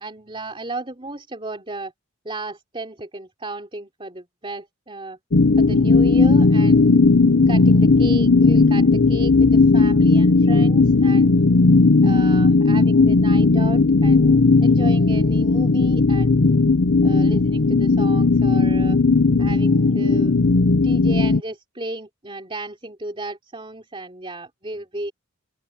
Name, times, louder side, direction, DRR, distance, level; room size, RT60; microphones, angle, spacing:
voice 1, 0.0-1.9 2.3-5.2 5.6-7.0 7.5-11.5 12.0-16.6 17.0-19.0 19.4-20.4 20.8-25.1, right 2 dB, 25° right, 3.4 m, -34 dB
sound 1, 5.3-21.4, left 3 dB, 65° left, 0.8 m, -16 dB
open air
head